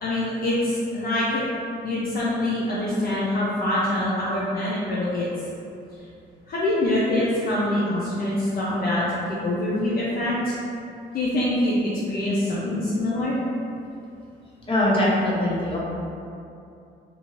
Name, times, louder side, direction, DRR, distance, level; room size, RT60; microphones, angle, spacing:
voice 1, 0.0-1.4 1.8-5.3 6.5-10.5 11.1-11.8 12.1-13.4, left 1 dB, 50° left, -7 dB, 0.5 m, -24 dB
voice 2, 14.7-15.8, left 1 dB, 25° left, -6 dB, 0.8 m, -22 dB
2.6 x 2.5 x 3.0 m, 2.6 s
cardioid pair, 90°, 20 cm